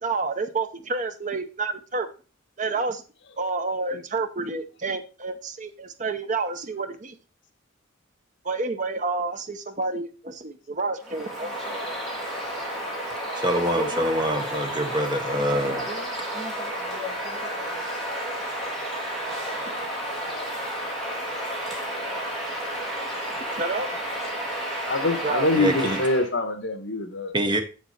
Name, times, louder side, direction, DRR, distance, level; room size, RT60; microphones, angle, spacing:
voice 1, 0.0-2.1 2.6-3.0 3.4-7.1 8.4-11.5 19.6-19.7 23.4-23.9 25.0-25.5, right 3 dB, 40° right, 0.7 m, -29 dB
Bird vocalization bird call bird song, 11.0-26.3, right 1 dB, ahead, 2.8 m, -31 dB
voice 2, 13.4-15.9 25.5-26.0 27.3-27.6, equal, 20° right, 1.0 m, -25 dB
voice 3, 24.9-27.3, left 2 dB, 60° left, 1.3 m, -24 dB
7.4 x 7.3 x 4.2 m
head